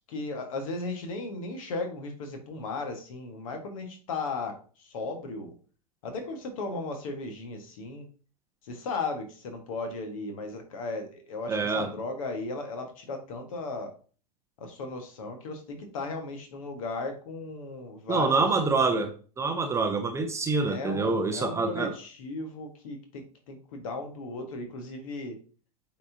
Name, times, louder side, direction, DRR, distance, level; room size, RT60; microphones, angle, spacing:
voice 1, 0.1-5.5 6.0-8.1 8.6-13.9 14.6-18.3 18.6-18.7 20.6-25.4, left 3 dB, 55° left, 5 dB, 1.6 m, -36 dB
voice 2, 11.5-11.9 18.1-21.9, right 4 dB, 15° right, 5 dB, 0.7 m, -26 dB
8.2 x 4.1 x 2.8 m, 0.39 s
figure-of-eight pair, 90°, 21 cm